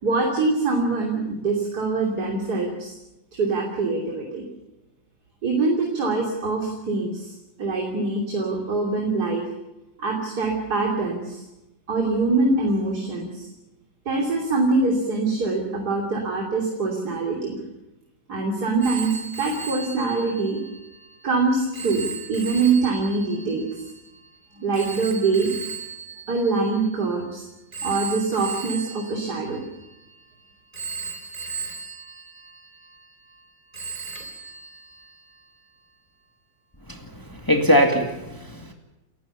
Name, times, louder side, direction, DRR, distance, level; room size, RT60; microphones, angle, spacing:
voice 1, 0.0-2.9 3.3-4.5 5.4-9.4 10.0-11.4 11.9-13.5 14.1-17.6 18.3-20.6 21.2-23.7 24.6-25.5 26.3-29.7, right 3 dB, 55° right, 0 dB, 3.5 m, -24 dB
Telephone, 18.8-27.2 27.7-30.2 30.7-33.4 33.7-35.5, right 5 dB, 25° right, 4.0 m, -37 dB
voice 2, 36.9-38.7, equal, 10° left, 4 dB, 2.1 m, -22 dB
29.5 x 14.5 x 7.1 m, 0.97 s
omnidirectional pair, 2.0 m